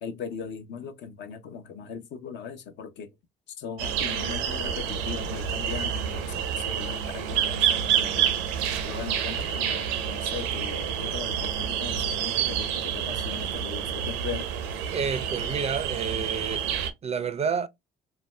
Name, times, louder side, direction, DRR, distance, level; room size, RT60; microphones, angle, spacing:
voice 1, 0.0-3.1 3.6-8.4 8.8-14.5, left 6 dB, 65° left, 0.8 m, -39 dB
sound 1, 3.8-16.9, right 9 dB, 85° right, 0.6 m, -28 dB
voice 2, 14.9-16.8 17.0-17.7, right 6 dB, 30° right, 0.4 m, -29 dB
2.6 x 2.1 x 3.2 m
supercardioid pair, 75°, 20 cm